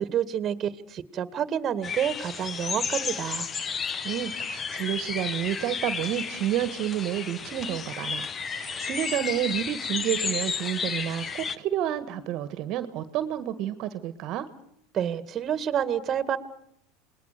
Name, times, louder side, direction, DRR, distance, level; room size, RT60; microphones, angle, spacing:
voice 1, 0.0-3.5 14.9-16.4, right 9 dB, 35° right, 14 dB, 2.1 m, -28 dB
sound 1, 1.8-11.6, left 6 dB, 30° left, 1.3 m, -32 dB
voice 2, 4.0-14.5, right 12 dB, 55° right, 13 dB, 1.7 m, -30 dB
28.0 x 20.5 x 6.9 m, 0.72 s
hypercardioid pair, 100°, 0 cm